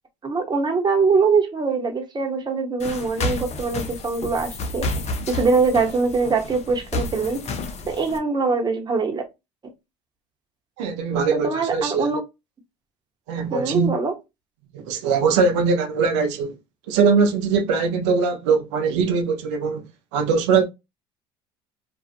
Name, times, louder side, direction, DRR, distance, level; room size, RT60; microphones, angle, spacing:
voice 1, 0.2-4.9 5.3-7.5 7.9-9.2 11.3-12.2 13.5-14.1, right 4 dB, 30° right, 0.9 m, -23 dB
sound 1, 2.8-8.2, left 2 dB, 50° left, 0.7 m, -30 dB
voice 2, 10.8-12.1 13.3-13.9 14.7-16.5 16.9-20.6, right 5 dB, 90° right, 0.5 m, -21 dB
2.5 x 2.4 x 2.4 m
supercardioid pair, 75°, 15 cm